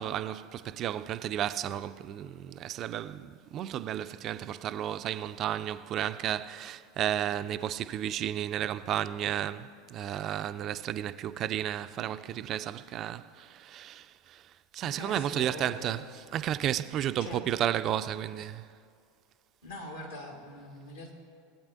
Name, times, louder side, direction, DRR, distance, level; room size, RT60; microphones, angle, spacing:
voice 1, 0.0-14.4 14.7-18.6, right 11 dB, 40° right, 0.3 m, -33 dB
voice 2, 14.9-16.0 17.2-17.4 18.4-18.5 19.6-21.1, left 1 dB, 75° left, 1.8 m, -43 dB
19.0 x 8.5 x 2.5 m
figure-of-eight pair, 80°, 0 cm